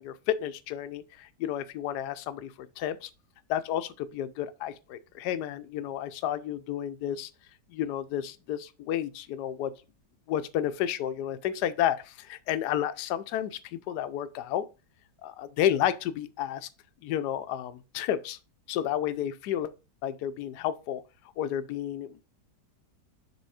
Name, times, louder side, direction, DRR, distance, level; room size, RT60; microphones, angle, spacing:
voice 1, 0.0-3.1 3.5-7.3 7.7-9.7 10.3-14.7 15.2-16.7 17.0-18.4 18.7-19.7 20.0-21.0 21.4-22.2, left 11 dB, 75° left, 1.2 m, -31 dB
6.9 x 3.5 x 4.8 m
omnidirectional pair, 1.9 m